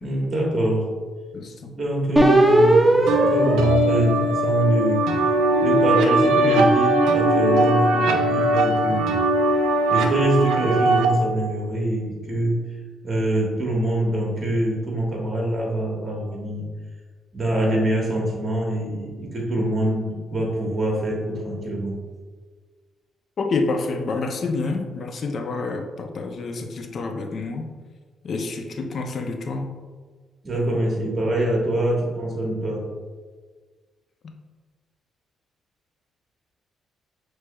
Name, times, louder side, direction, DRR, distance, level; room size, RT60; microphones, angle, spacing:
voice 1, 0.0-0.9 1.8-5.0 5.6-9.1 9.9-12.6 13.0-16.7 17.3-22.0 30.4-32.8, right 1 dB, 35° right, -2 dB, 1.3 m, -24 dB
voice 2, 1.3-1.7 23.4-27.7 28.2-29.7, left 3 dB, 50° left, 5 dB, 0.5 m, -28 dB
sound 1, 2.2-4.8 5.4-7.9, right 1 dB, 10° right, 0.5 m, -21 dB
sound 2, 3.1-11.0, right 1 dB, 90° right, 0.4 m, -20 dB
5.9 x 3.1 x 2.2 m, 1.5 s
cardioid pair, 90°, 0 cm